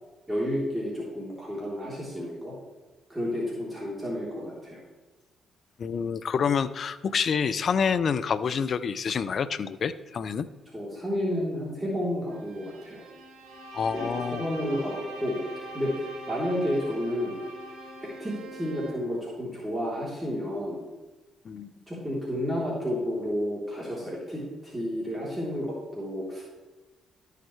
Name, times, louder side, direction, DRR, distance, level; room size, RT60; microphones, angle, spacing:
voice 1, 0.3-2.5 3.1-4.8 10.7-13.0 13.9-15.4 15.7-17.3 18.0-20.8 21.9-26.4, equal, 15° right, -6 dB, 3.4 m, -31 dB
voice 2, 5.8-10.5 13.7-14.4 21.4-21.7, left 6 dB, 55° left, 15 dB, 0.5 m, -27 dB
Bowed string instrument, 12.3-19.1, right 2 dB, 65° right, 3.0 m, -47 dB
Bowed string instrument 2, 13.4-18.1, right 1 dB, 90° right, 1.8 m, -41 dB
13.5 x 6.6 x 3.2 m, 1.2 s
supercardioid pair, 55°, 0 cm